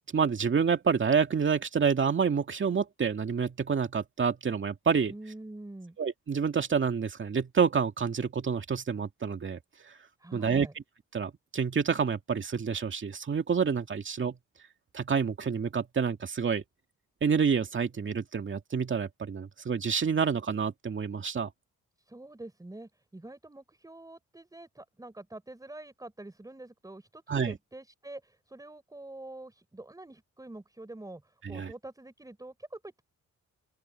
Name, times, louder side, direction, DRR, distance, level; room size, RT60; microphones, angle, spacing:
voice 1, 0.1-5.1 6.0-9.6 10.3-10.7 11.1-14.4 14.9-16.6 17.2-21.5 27.3-27.6 31.4-31.7, right 6 dB, 40° right, 2.2 m, -28 dB
voice 2, 5.1-6.0 10.2-10.7 22.0-33.0, right 2 dB, 10° right, 4.8 m, -46 dB
open air
cardioid pair, 120°, 30 cm